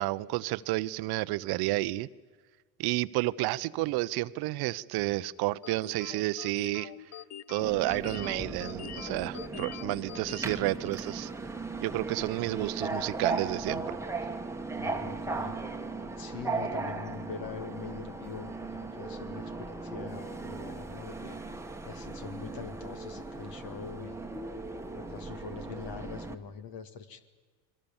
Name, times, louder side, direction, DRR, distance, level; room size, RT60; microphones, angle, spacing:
voice 1, 0.0-2.1 2.8-6.9 7.5-11.3 11.8-14.0, right 19 dB, 60° right, 16 dB, 0.8 m, -31 dB
sound 1, 5.6-11.4, left 11 dB, 35° left, 0.9 m, -45 dB
Subway metro underground, 7.6-26.3, right 3 dB, 5° right, 1.4 m, -37 dB
voice 2, 14.8-15.6 16.2-21.4 21.8-24.3 24.9-27.2, left 6 dB, 55° left, 9 dB, 1.9 m, -43 dB
28.5 x 21.5 x 7.2 m, 1.4 s
supercardioid pair, 95°, 43 cm